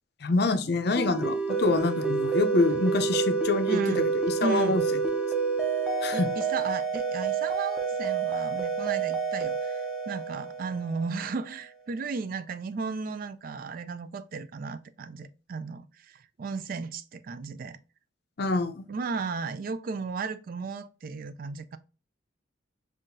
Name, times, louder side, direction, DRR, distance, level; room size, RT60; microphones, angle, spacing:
voice 1, 0.2-4.8 6.0-6.3 18.4-18.8, left 3 dB, 55° left, 0.5 m, -26 dB
sound 1, 1.0-11.3, right 5 dB, 5° right, 0.6 m, -28 dB
voice 2, 3.7-4.1 4.4-4.8 6.1-17.8 18.9-21.8, right 4 dB, 45° right, 0.3 m, -35 dB
5.5 x 2.5 x 2.5 m
head